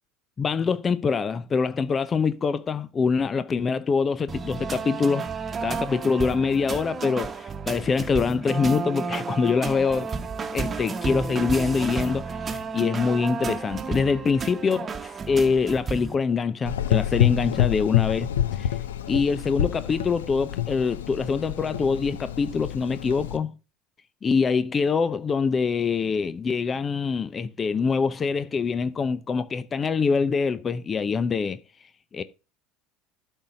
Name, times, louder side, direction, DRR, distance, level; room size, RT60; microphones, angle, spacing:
voice 1, 0.4-5.3 5.6-10.1 10.5-18.3 18.6-18.7 19.1-23.6 24.2-31.6 32.1-32.2, left 5 dB, 30° left, 0.6 m, -24 dB
sound 1, 4.3-16.1, right 4 dB, 30° right, 1.1 m, -32 dB
Gurgling / Engine, 16.7-23.4, left 11 dB, 80° left, 0.6 m, -27 dB
12.0 x 4.1 x 5.2 m
hypercardioid pair, 70°, 0 cm